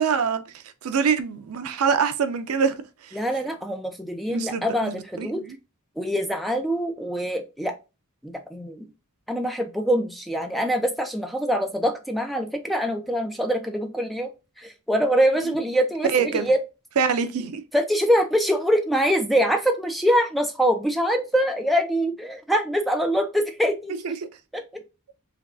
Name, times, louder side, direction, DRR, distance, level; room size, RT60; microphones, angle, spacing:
voice 1, 0.0-3.2 4.3-5.6 15.4-15.5 16.1-16.5 17.0-17.6 23.9-24.2, right 6 dB, 70° right, 0.5 m, -25 dB
voice 2, 3.1-5.4 6.0-7.7 8.2-8.9 9.3-14.3 14.6-16.6 17.7-23.9 24.5-24.6, equal, ahead, 0.5 m, -24 dB
3.5 x 2.3 x 3.5 m
head